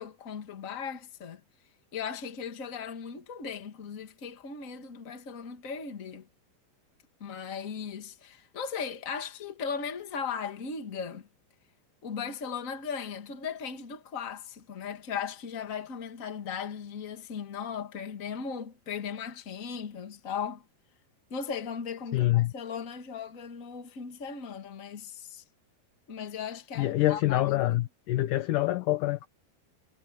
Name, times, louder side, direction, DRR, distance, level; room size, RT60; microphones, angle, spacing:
voice 1, 0.0-1.4 1.9-6.3 7.2-11.3 12.0-20.6 21.3-25.4 26.1-27.8, left 6 dB, 30° left, 1.4 m, -37 dB
voice 2, 22.1-22.5 26.8-29.3, left 16 dB, 80° left, 1.8 m, -26 dB
omnidirectional pair, 4.9 m